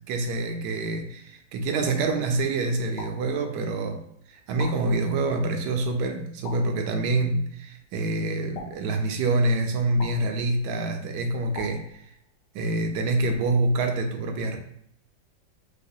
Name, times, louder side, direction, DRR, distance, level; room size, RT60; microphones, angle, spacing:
voice 1, 0.1-4.0 4.3-11.8 12.5-14.6, right 2 dB, 75° right, 4 dB, 1.1 m, -26 dB
sound 1, 3.0-3.9 4.6-5.5 6.4-7.3 8.5-9.5 10.0-10.8 11.5-12.5, left 3 dB, 60° left, 1.3 m, -44 dB
4.8 x 2.1 x 2.6 m, 0.70 s
omnidirectional pair, 1.9 m